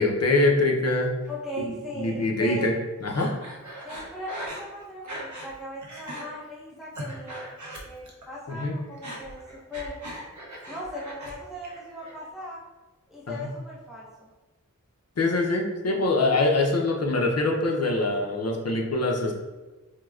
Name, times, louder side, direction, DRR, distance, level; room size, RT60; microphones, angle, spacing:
voice 1, 0.0-1.1 1.7-2.7 3.0-3.3 8.5-8.7 13.3-13.5 15.2-19.3, left 2 dB, 55° left, 0 dB, 0.6 m, -24 dB
voice 2, 1.3-2.7 3.8-10.0 10.7-12.6 13.1-14.3, left 1 dB, ahead, -6 dB, 0.6 m, -38 dB
Breathing, 3.1-5.5 5.8-6.3 6.7-8.3 8.5-11.3 11.6-12.3, right 1 dB, 65° right, 0.6 m, -39 dB
4.5 x 2.1 x 2.3 m, 1.2 s
wide cardioid pair, 60°, 31 cm